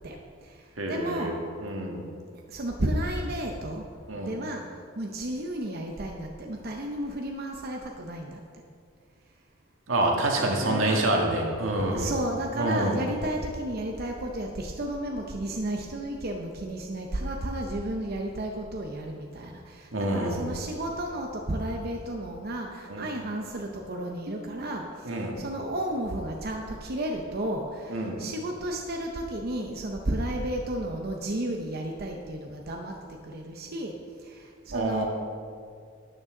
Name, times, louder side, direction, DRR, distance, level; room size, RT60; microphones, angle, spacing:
voice 1, 0.0-1.3 2.5-3.8 4.2-4.7 4.9-8.4 10.6-35.1, right 1 dB, 50° right, 2 dB, 0.8 m, -33 dB
voice 2, 0.8-2.0 4.1-4.3 9.9-12.1 12.5-13.0 19.9-20.4 22.9-23.1 24.3-24.4 25.0-25.3 27.9-28.2 34.7-35.1, right 1 dB, 90° right, 0 dB, 1.8 m, -27 dB
12.5 x 9.1 x 3.8 m, 2.2 s
head